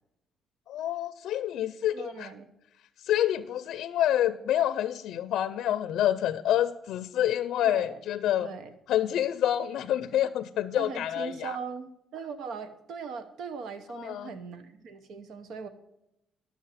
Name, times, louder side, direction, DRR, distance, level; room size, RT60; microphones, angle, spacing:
voice 1, 0.7-2.3 3.0-8.5 8.9-11.5 13.9-14.3, left 11 dB, 80° left, 13 dB, 0.5 m, -27 dB
voice 2, 1.9-2.5 7.6-8.0 8.4-8.7 10.7-15.7, right 5 dB, 75° right, 10 dB, 1.0 m, -39 dB
12.0 x 7.2 x 5.6 m, 0.84 s
cardioid pair, 90°, 0 cm